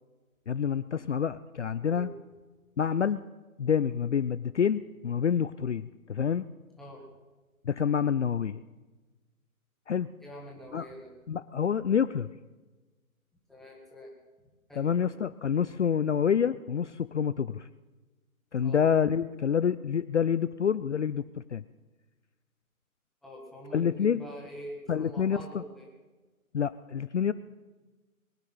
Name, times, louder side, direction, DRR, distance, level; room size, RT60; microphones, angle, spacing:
voice 1, 0.5-2.1 2.8-3.2 3.6-6.5 7.7-8.6 9.9-10.1 10.7-10.9 11.3-12.3 14.8-17.7 18.5-21.6 23.7-24.2 24.9-25.6 26.5-27.3, left 7 dB, 55° left, 14 dB, 0.5 m, -27 dB
voice 2, 1.8-2.1 6.8-7.0 10.2-11.1 13.5-14.1 14.7-14.9 18.6-18.8 23.2-25.9, equal, ahead, -4 dB, 1.9 m, -45 dB
22.5 x 9.8 x 5.7 m, 1.2 s
figure-of-eight pair, 145°, 43 cm